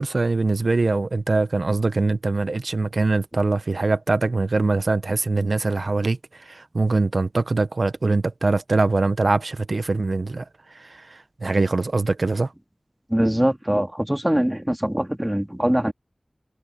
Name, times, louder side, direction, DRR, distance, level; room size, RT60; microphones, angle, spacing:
voice 1, 0.0-6.2 6.5-10.4 11.4-12.5, right 3 dB, 85° right, 0.9 m, -22 dB
voice 2, 13.1-15.9, equal, 15° right, 2.3 m, -22 dB
wide cardioid pair, 55°, 0 cm